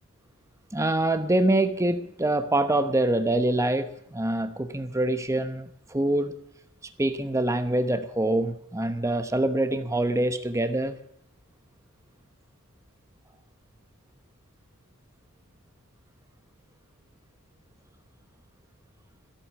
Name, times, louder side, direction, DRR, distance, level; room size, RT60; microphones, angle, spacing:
voice 1, 0.7-6.4 7.0-11.0, right 1 dB, 15° right, 9 dB, 0.9 m, -25 dB
14.5 x 7.9 x 8.5 m, 0.72 s
head